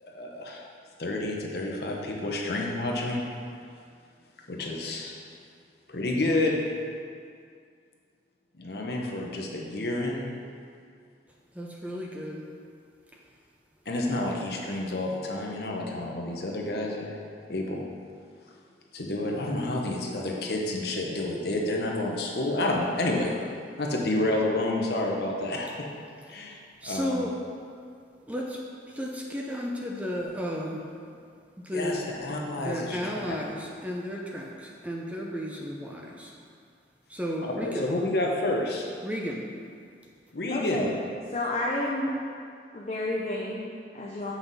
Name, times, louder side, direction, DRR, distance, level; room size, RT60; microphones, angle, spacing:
voice 1, 0.0-0.6 1.0-3.2 4.5-5.1 5.9-6.6 8.6-10.3 13.9-17.2 17.5-17.9 18.9-23.3 23.8-25.9 26.3-27.3 31.7-33.4 37.4-38.9 40.3-40.9, left 2 dB, 60° left, -1 dB, 1.0 m, -29 dB
voice 2, 11.6-12.5 26.8-27.4 28.3-28.6 28.9-30.8 31.6-32.1 32.6-36.3 37.1-37.9 39.0-39.4, equal, 10° right, -2 dB, 0.5 m, -33 dB
voice 3, 40.5-40.9 41.3-42.1 42.7-44.3, left 1 dB, 35° left, -4 dB, 0.6 m, -30 dB
7.5 x 5.8 x 4.1 m, 2.2 s
head